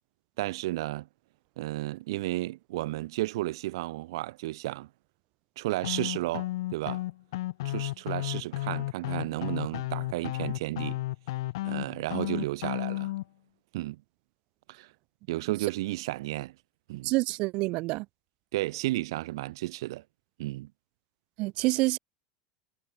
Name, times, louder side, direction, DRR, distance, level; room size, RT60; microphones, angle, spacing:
voice 1, 0.4-1.1 1.6-4.9 5.6-7.0 7.6-11.0 11.6-13.1 13.7-14.0 14.7-14.9 15.3-16.5 16.9-17.1 18.5-20.0 20.4-20.7, right 18 dB, 75° right, 4.3 m, -33 dB
sound 1, 5.8-13.2, left 17 dB, 80° left, 4.9 m, -33 dB
voice 2, 17.0-18.0 21.4-22.0, right 23 dB, 45° right, 0.8 m, -27 dB
supercardioid pair, 165°, 3 cm